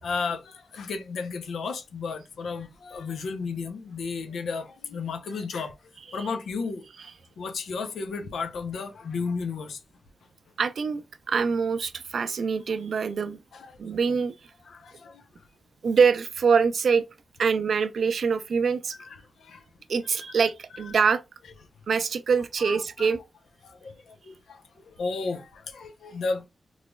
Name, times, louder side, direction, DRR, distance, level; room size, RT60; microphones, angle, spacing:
voice 1, 0.0-5.7 6.1-6.9 7.4-9.8 13.5-13.7 14.7-15.5 19.1-19.6 22.6-23.1 23.6-26.5, left 4 dB, 90° left, 0.5 m, -33 dB
voice 2, 10.6-13.4 13.8-14.3 15.8-17.0 17.4-19.0 19.9-21.2 21.9-23.2, right 5 dB, 75° right, 0.4 m, -24 dB
3.9 x 3.0 x 2.2 m
cardioid pair, 45°, 0 cm